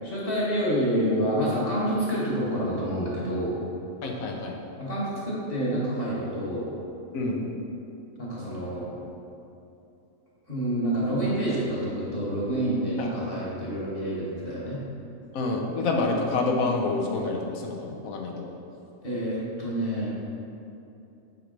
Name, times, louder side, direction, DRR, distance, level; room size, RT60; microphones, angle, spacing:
voice 1, 0.0-3.6 4.8-6.7 8.2-8.9 10.5-14.8 19.0-20.1, equal, 45° left, -7 dB, 1.6 m, -28 dB
voice 2, 4.0-4.5 7.1-7.4 13.0-13.1 15.3-18.5, left 3 dB, 85° left, 0 dB, 1.2 m, -27 dB
7.7 x 3.2 x 5.1 m, 2.8 s
omnidirectional pair, 1.4 m